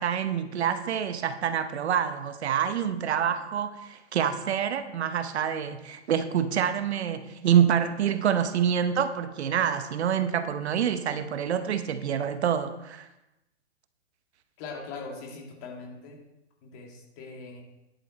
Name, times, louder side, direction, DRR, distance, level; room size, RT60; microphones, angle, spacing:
voice 1, 0.0-13.1, right 8 dB, 65° right, 10 dB, 1.0 m, -27 dB
voice 2, 14.6-16.2 16.6-17.6, left 4 dB, 30° left, 0 dB, 2.4 m, -41 dB
11.0 x 7.0 x 4.4 m, 0.93 s
hypercardioid pair, 145°, 36 cm